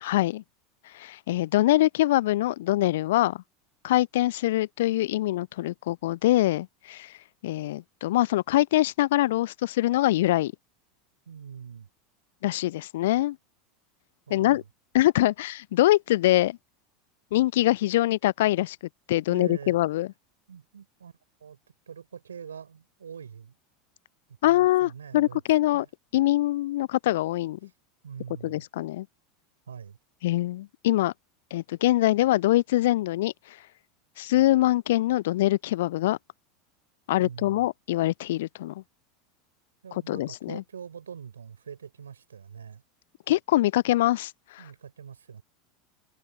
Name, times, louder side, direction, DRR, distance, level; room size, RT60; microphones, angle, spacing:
voice 1, 0.0-0.4 0.9-3.4 3.8-7.1 7.4-10.5 12.4-13.4 14.3-14.6 14.9-16.6 17.3-18.8 19.1-20.1 24.4-25.9 26.1-27.6 28.4-29.1 30.2-31.1 31.5-33.3 34.2-36.2 37.1-38.8 40.1-40.6 43.3-44.6, left 15 dB, 60° left, 0.4 m, -24 dB
voice 2, 11.3-11.9 14.3-14.6 19.3-19.8 20.5-21.1 21.4-23.6 24.4-25.4 25.7-25.9 28.0-28.7 29.7-30.0 37.1-37.7 39.8-42.8 44.6-45.4, right 7 dB, 75° right, 5.3 m, -43 dB
figure-of-eight pair, 80°, 0 cm